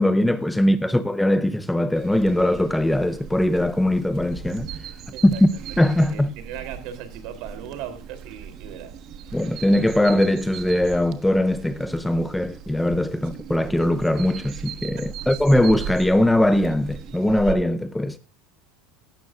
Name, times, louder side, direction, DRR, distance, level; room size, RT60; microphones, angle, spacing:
voice 1, 0.0-4.7 5.2-6.3 9.3-18.2, left 1 dB, 5° left, 0.5 m, -21 dB
voice 2, 0.6-0.9 5.1-5.4 6.1-9.4 13.2-13.3 15.0-15.4, right 9 dB, 60° right, 3.5 m, -39 dB
sound 1, 1.9-17.5, right 8 dB, 40° right, 1.3 m, -38 dB
16.5 x 12.5 x 2.5 m
supercardioid pair, 140°, 0 cm